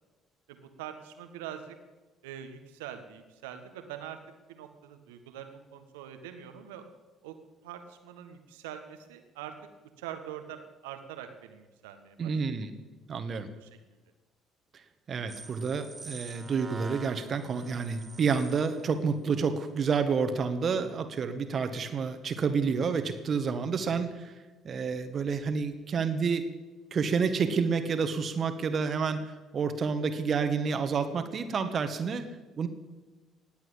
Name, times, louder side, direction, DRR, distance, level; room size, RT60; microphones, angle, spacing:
voice 1, 0.5-1.8 2.2-4.2 4.5-6.9 7.2-7.3 7.6-9.5 10.0-12.3 13.5-13.7, right 10 dB, 80° right, 7 dB, 1.5 m, -43 dB
voice 2, 12.2-12.7 13.1-13.5 15.1-24.3 24.6-26.4 26.9-32.3 32.6-32.7, right 5 dB, 50° right, 9 dB, 1.7 m, -29 dB
sound 1, 15.3-18.9, right 3 dB, 25° right, 2.9 m, -46 dB
19.0 x 8.3 x 8.5 m, 1.2 s
hypercardioid pair, 50°, 0 cm